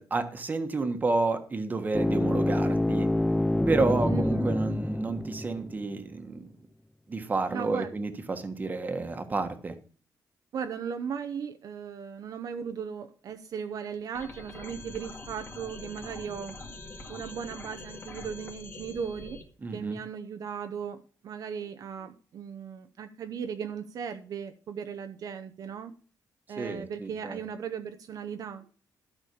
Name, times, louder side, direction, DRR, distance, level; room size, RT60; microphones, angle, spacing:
voice 1, 0.0-3.1 3.7-6.5 7.1-9.8 19.6-20.0 26.6-27.4, right 3 dB, 25° right, 1.4 m, -30 dB
sound 1, 1.9-5.9, left 1 dB, 5° left, 0.4 m, -27 dB
voice 2, 4.1-4.6 7.5-7.9 10.5-16.6 17.1-19.4 19.7-25.9 26.5-28.7, right 7 dB, 60° right, 0.8 m, -37 dB
sound 2, 14.1-19.4, left 2 dB, 30° left, 1.9 m, -44 dB
12.5 x 5.3 x 6.9 m
wide cardioid pair, 155°, 7 cm